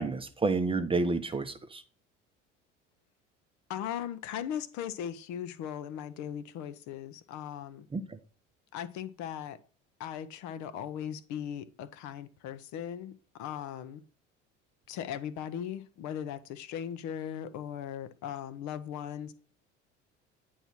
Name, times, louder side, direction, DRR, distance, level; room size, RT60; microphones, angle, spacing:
voice 1, 0.0-1.8 7.9-8.2, right 3 dB, 15° right, 8 dB, 0.6 m, -30 dB
voice 2, 3.7-7.9 8.7-9.6 10.0-14.0 14.9-19.3, left 9 dB, 50° left, 12 dB, 0.7 m, -38 dB
9.0 x 3.1 x 5.6 m, 0.41 s
figure-of-eight pair, 65°, 37 cm